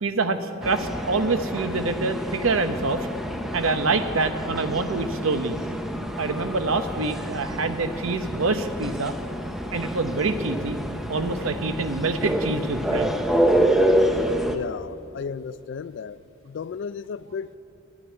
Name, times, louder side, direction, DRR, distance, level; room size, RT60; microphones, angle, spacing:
voice 1, 0.0-3.1 3.5-5.6 6.2-9.1 9.7-13.1, right 3 dB, 85° right, 0.8 m, -26 dB
sound 1, 0.6-14.6, equal, ahead, 0.6 m, -27 dB
voice 2, 14.4-17.6, left 6 dB, 60° left, 0.3 m, -34 dB
10.0 x 9.8 x 9.4 m
head